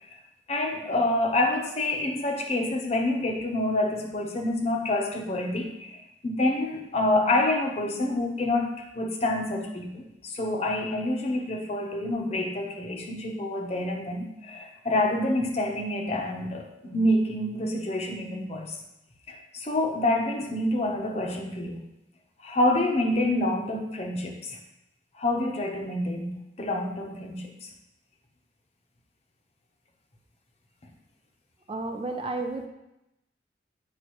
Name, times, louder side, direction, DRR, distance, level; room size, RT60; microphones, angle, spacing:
voice 1, 0.5-18.8 19.3-21.8 22.4-24.6 25.1-27.7, left 1 dB, 35° left, 2 dB, 0.8 m, -27 dB
voice 2, 31.7-32.7, right 2 dB, 30° right, 4 dB, 0.5 m, -32 dB
8.4 x 5.1 x 3.1 m, 0.89 s
head